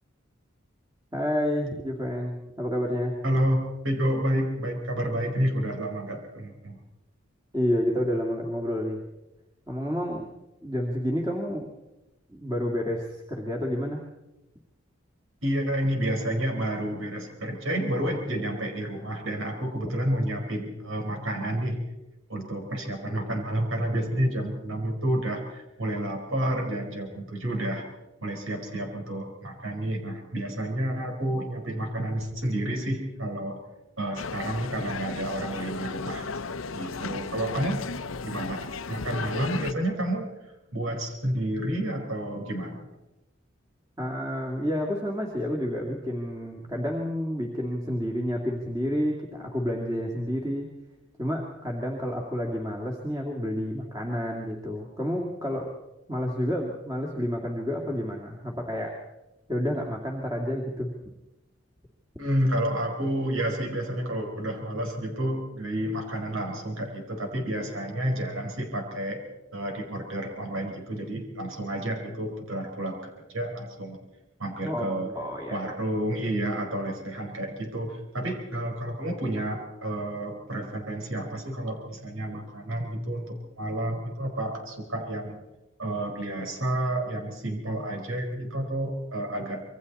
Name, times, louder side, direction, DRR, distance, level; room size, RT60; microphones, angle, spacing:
voice 1, 1.1-3.2 7.5-9.0 9.7-10.2 10.6-11.7 12.3-14.0 44.0-50.7 51.2-55.7 56.1-59.0 59.5-60.9 74.6-75.6, equal, 15° right, -1 dB, 2.3 m, -29 dB
voice 2, 3.2-6.8 15.4-21.8 22.3-27.9 28.2-33.6 34.0-36.3 36.7-37.8 38.2-40.3 40.7-42.9 62.2-69.2 69.5-74.0 74.4-75.1 75.5-85.4 85.8-89.6, right 1 dB, 85° right, 2 dB, 4.8 m, -30 dB
sound 1, 34.2-39.7, left 4 dB, 85° left, 0.7 m, -35 dB
27.0 x 23.0 x 4.2 m, 0.97 s
head